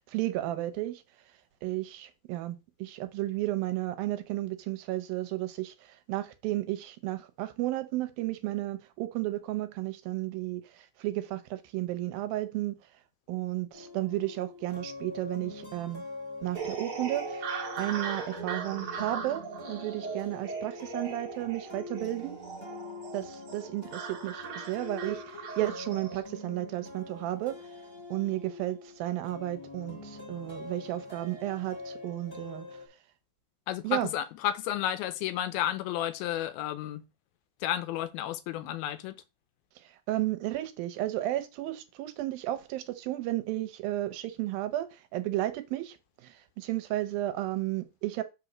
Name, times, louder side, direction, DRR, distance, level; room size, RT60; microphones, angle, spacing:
voice 1, 0.1-1.0 1.6-12.8 13.3-16.0 16.4-22.4 23.1-27.6 28.1-32.6 33.8-34.1 40.1-46.0 46.2-48.2, right 15 dB, 80° right, 2.5 m, -33 dB
sound 1, 13.7-32.9, left 3 dB, 10° left, 1.8 m, -44 dB
sound 2, 16.5-26.2, right 5 dB, 50° right, 1.8 m, -39 dB
voice 2, 33.7-37.0 37.6-39.2, left 11 dB, 90° left, 2.5 m, -32 dB
5.6 x 4.1 x 5.9 m
omnidirectional pair, 4.3 m